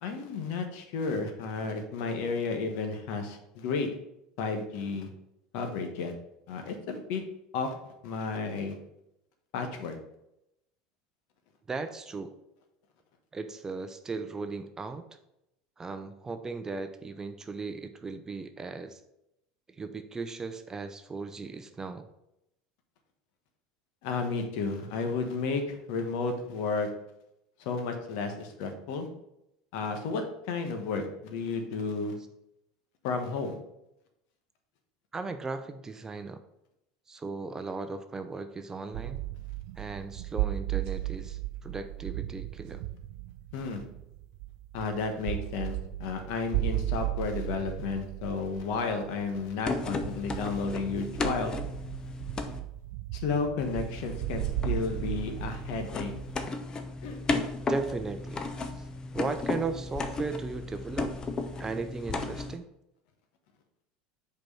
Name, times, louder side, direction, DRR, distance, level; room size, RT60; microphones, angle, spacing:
voice 1, 0.0-3.9 4.4-5.1 5.5-6.1 6.5-7.2 7.5-7.8 8.0-8.7 9.5-10.0 24.0-26.9 27.6-29.1 29.7-32.2 33.0-33.6 43.5-43.8 44.7-51.6 53.1-56.1 57.0-57.2, left 4 dB, 70° left, 5 dB, 1.2 m, -32 dB
voice 2, 11.7-12.3 13.3-15.0 15.8-19.0 19.7-22.1 35.1-36.4 37.1-39.2 39.8-42.8 57.7-58.4 58.7-58.9 59.1-61.1 61.6-62.7, right 4 dB, 20° right, 9 dB, 0.6 m, -37 dB
sound 1, 38.9-56.5, right 16 dB, 75° right, 0.3 m, -36 dB
sound 2, 49.6-52.6 53.6-62.6, left 3 dB, 30° left, 0.8 m, -35 dB
5.1 x 4.6 x 5.5 m, 0.84 s
supercardioid pair, 105°, 3 cm